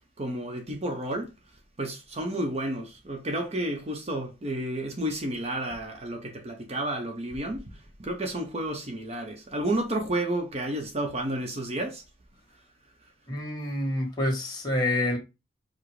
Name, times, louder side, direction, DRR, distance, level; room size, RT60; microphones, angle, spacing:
voice 1, 0.2-1.3 1.8-7.6 8.0-12.0, right 1 dB, 35° right, 0.9 m, -31 dB
voice 2, 13.3-15.2, left 1 dB, 25° left, 1.9 m, -27 dB
4.9 x 2.2 x 4.7 m
head